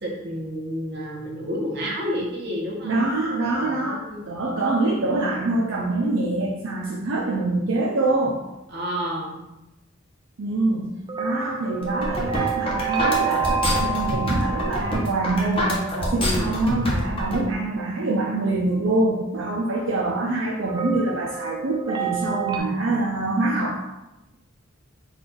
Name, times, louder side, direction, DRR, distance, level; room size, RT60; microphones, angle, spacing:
voice 1, 0.0-3.0 3.6-4.2 8.7-9.4 16.2-16.6, equal, 60° right, -3 dB, 1.1 m, -30 dB
voice 2, 2.8-8.4 10.4-23.8, right 2 dB, 85° right, -3 dB, 0.6 m, -25 dB
sound 1, 11.1-16.0 20.7-22.6, right 5 dB, 20° right, 0.4 m, -29 dB
sound 2, 11.8-17.4, equal, 30° left, 0.9 m, -25 dB
4.1 x 2.6 x 4.5 m, 0.97 s
head